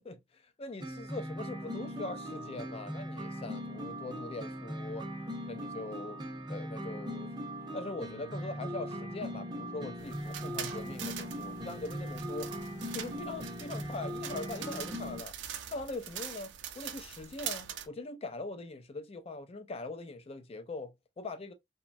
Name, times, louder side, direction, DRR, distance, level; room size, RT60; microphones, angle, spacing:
voice 1, 0.0-5.1 5.5-6.2 6.5-7.3 7.7-12.5 12.9-15.3 15.7-21.5, left 2 dB, 35° left, 0.4 m, -42 dB
sound 1, 0.8-15.2, equal, 25° right, 0.6 m, -40 dB
sound 2, 10.0-17.9, right 9 dB, 80° right, 0.5 m, -43 dB
3.0 x 2.2 x 2.5 m
head